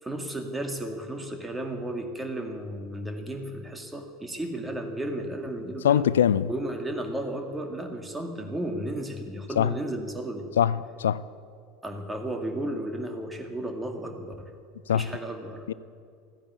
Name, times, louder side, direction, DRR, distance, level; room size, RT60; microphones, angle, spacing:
voice 1, 0.0-6.1 6.5-10.5 11.8-14.5 14.9-15.7, right 1 dB, 10° right, 2.1 m, -34 dB
voice 2, 5.8-6.5 9.6-9.7 10.6-11.2 14.9-15.1 15.7-15.8, left 9 dB, 75° left, 0.3 m, -22 dB
15.0 x 10.0 x 8.3 m
figure-of-eight pair, 80°, 0 cm